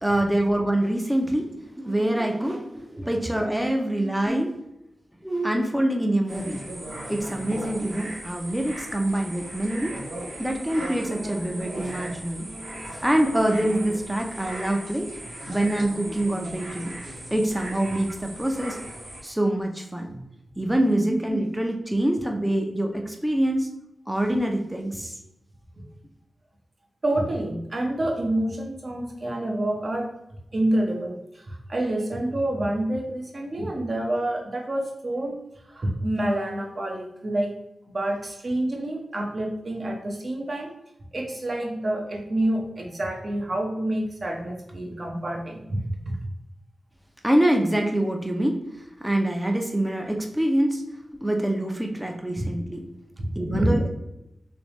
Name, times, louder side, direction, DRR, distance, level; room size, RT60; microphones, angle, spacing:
voice 1, 0.0-4.5 5.2-6.6 7.1-10.0 10.4-12.5 12.9-15.1 15.5-16.9 17.3-18.8 19.2-20.1 20.6-23.7 24.1-25.1 25.8-25.9 47.2-48.6 49.0-50.8 51.2-52.9 53.4-53.9, right 1 dB, 10° right, 2 dB, 0.6 m, -25 dB
sound 1, 6.3-19.2, right 1 dB, 85° right, 1.0 m, -37 dB
voice 2, 27.0-30.1 30.5-35.4 35.7-37.5 37.9-40.7 41.1-46.2 52.4-52.5 53.2-53.9, right 1 dB, 50° right, 1 dB, 0.9 m, -28 dB
3.4 x 3.1 x 3.1 m, 0.86 s
cardioid pair, 45°, 0 cm